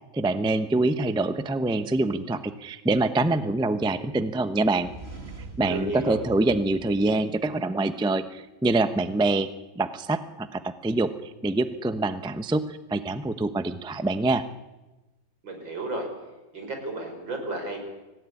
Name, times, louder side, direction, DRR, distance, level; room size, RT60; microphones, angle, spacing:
voice 1, 0.1-4.9 5.6-9.5 9.8-11.1 11.4-14.4, right 2 dB, 5° right, 10 dB, 0.5 m, -25 dB
sound 1, 4.6-7.6, right 1 dB, 35° right, 2.7 m, -43 dB
voice 2, 5.6-6.2 15.4-16.1 16.5-17.8, right 2 dB, 85° right, 4 dB, 6.1 m, -32 dB
25.5 x 17.0 x 9.8 m, 1.1 s
omnidirectional pair, 2.0 m